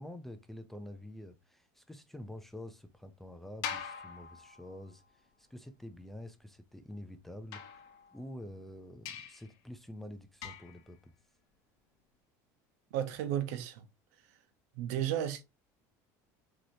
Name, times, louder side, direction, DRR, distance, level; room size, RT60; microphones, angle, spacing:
voice 1, 0.0-11.1, left 1 dB, 5° left, 0.3 m, -48 dB
sound 1, 3.6-5.0 7.5-8.4 9.0-9.5 10.4-10.9, left 8 dB, 50° left, 0.8 m, -43 dB
voice 2, 12.9-13.9 14.7-15.4, right 11 dB, 90° right, 0.9 m, -33 dB
6.1 x 2.8 x 2.7 m
cardioid pair, 175°, 8 cm